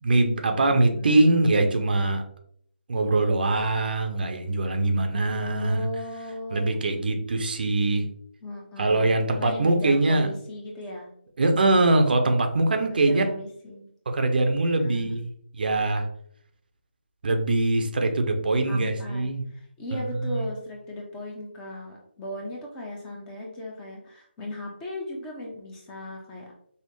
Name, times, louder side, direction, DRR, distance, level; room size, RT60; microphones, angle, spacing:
voice 1, 0.0-2.2 2.9-5.9 6.5-8.1 8.8-10.3 11.4-13.2 14.1-15.3 15.5-16.1 17.2-19.4 19.9-20.0 20.3-20.4, right 2 dB, 55° right, 5 dB, 0.7 m, -22 dB
voice 2, 0.7-1.6 5.4-6.8 8.4-11.1 12.8-13.9 14.8-15.2 18.7-26.5, left 1 dB, 10° left, -1 dB, 0.7 m, -37 dB
5.5 x 2.1 x 3.0 m, 0.65 s
figure-of-eight pair, 150°, 6 cm